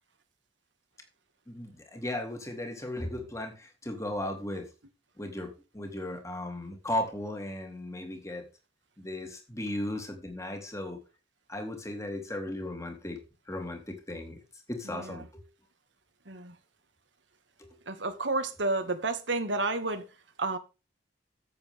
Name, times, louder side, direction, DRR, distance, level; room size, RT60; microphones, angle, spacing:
voice 1, 1.5-4.7 5.2-8.5 9.0-11.0 11.5-13.2 13.5-14.4 14.7-15.4 17.6-17.8, left 1 dB, 15° left, 3.0 m, -36 dB
voice 2, 14.8-15.3 16.3-16.5 17.9-20.1 20.4-20.6, right 3 dB, 80° right, 2.1 m, -31 dB
13.5 x 8.3 x 3.6 m
head